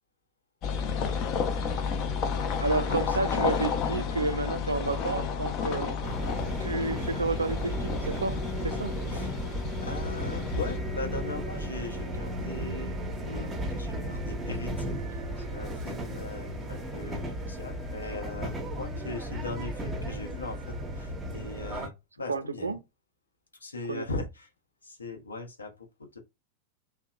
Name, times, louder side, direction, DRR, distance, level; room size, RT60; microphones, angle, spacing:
sound 1, 0.6-10.8, left 6 dB, 40° left, 0.4 m, -31 dB
voice 1, 2.6-6.0 6.6-9.0 22.3-22.8 23.9-24.1, right 3 dB, 75° right, 0.4 m, -31 dB
sound 2, 6.0-21.9, equal, 15° right, 0.6 m, -34 dB
voice 2, 9.8-15.0 15.4-22.8 23.6-24.5 24.8-25.7 26.0-26.2, left 3 dB, 75° left, 0.7 m, -39 dB
2.7 x 2.1 x 2.3 m
figure-of-eight pair, 90°, 0 cm